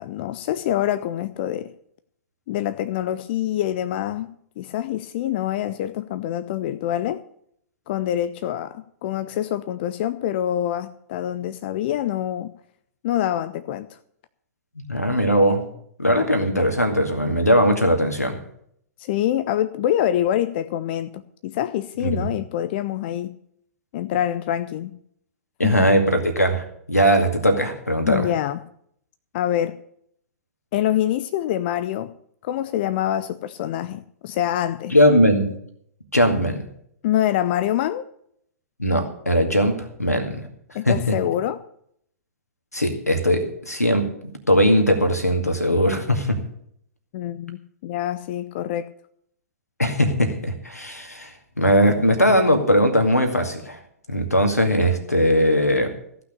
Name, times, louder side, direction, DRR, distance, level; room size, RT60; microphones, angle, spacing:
voice 1, 0.0-1.7 2.5-4.3 4.6-7.2 7.9-12.5 13.0-14.0 19.0-23.3 23.9-25.0 25.6-25.9 28.0-28.6 29.3-29.8 30.7-32.1 32.4-35.0 37.0-38.1 40.7-41.6 47.1-48.9, left 12 dB, 40° left, 0.5 m, -25 dB
voice 2, 14.8-15.6 16.0-18.4 22.1-22.3 25.6-28.3 34.9-35.5 36.1-36.6 38.8-40.5 40.9-41.2 42.7-44.0 44.5-46.4 49.8-51.3 51.6-53.8 54.1-55.9, equal, 85° left, 2.1 m, -19 dB
15.0 x 6.0 x 8.4 m
figure-of-eight pair, 110°, 8 cm